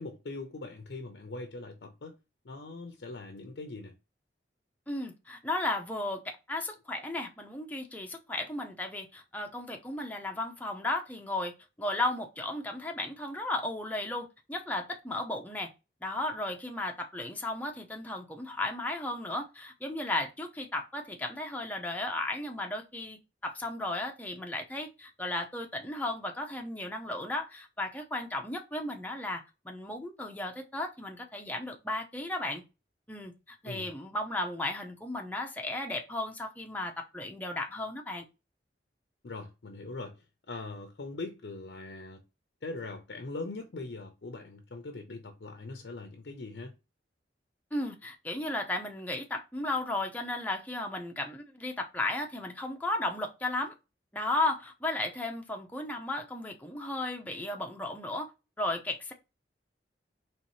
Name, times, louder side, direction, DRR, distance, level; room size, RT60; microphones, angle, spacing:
voice 1, 0.0-2.2 2.4-3.9 33.6-33.9 39.2-40.2 40.5-42.2 42.6-46.7, left 3 dB, 75° left, 0.6 m, -41 dB
voice 2, 4.9-6.2 6.5-11.5 11.8-15.7 16.0-32.6 33.1-38.2 47.7-53.7 54.1-58.3 58.6-59.1, left 2 dB, 10° left, 0.6 m, -35 dB
4.2 x 3.1 x 3.1 m
head